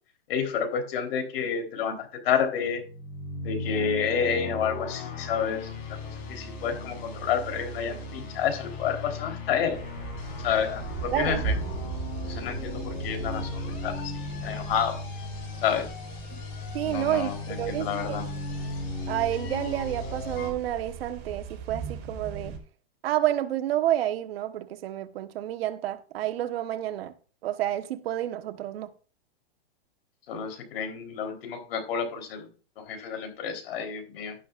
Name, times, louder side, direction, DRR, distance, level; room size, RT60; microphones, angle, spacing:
voice 1, 0.3-2.8 3.4-6.0 6.3-9.8 10.4-11.5 12.2-15.0 15.6-15.9 16.8-18.3 30.3-32.5 32.8-34.4, left 7 dB, 65° left, 3.9 m, -29 dB
sound 1, 2.7-20.5, left 2 dB, 40° left, 4.2 m, -37 dB
sound 2, 9.7-22.6, right 5 dB, 40° right, 4.2 m, -38 dB
voice 2, 11.1-11.4 16.3-16.4 16.7-17.3 17.6-18.2 19.1-22.5 23.0-27.1 27.4-28.9, right 12 dB, 70° right, 1.3 m, -29 dB
12.0 x 11.0 x 2.5 m
supercardioid pair, 150°, 32 cm